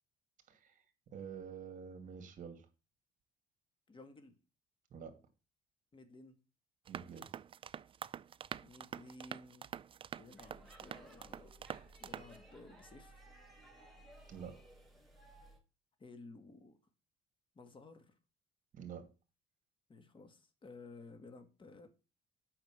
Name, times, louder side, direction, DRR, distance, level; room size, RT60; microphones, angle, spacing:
voice 1, 0.5-0.8 1.1-2.7 4.9-5.2 6.9-7.4 14.3-14.6 18.7-19.1, right 7 dB, 50° right, 2.6 m, -48 dB
voice 2, 3.9-4.4 5.9-6.4 8.6-9.7 10.2-11.5 12.0-13.3 16.0-16.8 17.5-18.2 19.9-21.9, left 3 dB, 30° left, 2.1 m, -55 dB
sound 1, 6.9-12.4, right 8 dB, 30° right, 0.4 m, -46 dB
Speech / Shout / Subway metro underground, 10.4-15.6, right 1 dB, ahead, 3.4 m, -59 dB
8.8 x 5.8 x 7.5 m
cardioid pair, 110°, 17 cm